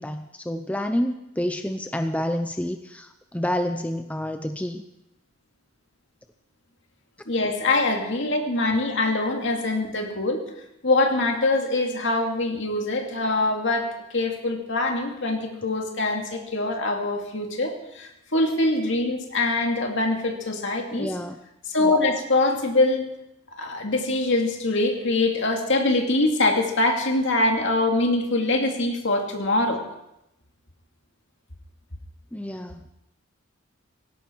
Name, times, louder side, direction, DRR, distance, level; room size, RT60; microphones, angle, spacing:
voice 1, 0.0-4.8 20.9-21.4 32.3-32.8, left 1 dB, 5° left, 7 dB, 0.6 m, -28 dB
voice 2, 7.3-10.4 10.8-21.1 21.7-23.1 23.6-29.8, left 2 dB, 60° left, 2 dB, 2.6 m, -23 dB
18.5 x 16.5 x 4.6 m, 0.85 s
head